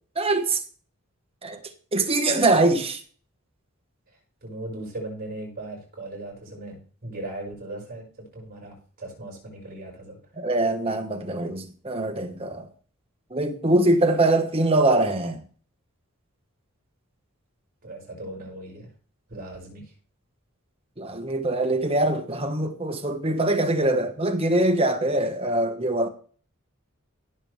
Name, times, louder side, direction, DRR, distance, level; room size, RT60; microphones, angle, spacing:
voice 1, 0.1-0.6 1.4-1.6 1.9-3.0 10.4-12.7 13.3-15.4 21.0-26.1, right 2 dB, 25° right, 1.4 m, -23 dB
voice 2, 4.4-10.2 17.8-18.9 19.3-19.9, right 1 dB, 45° right, 5.9 m, -38 dB
16.5 x 7.1 x 3.3 m
head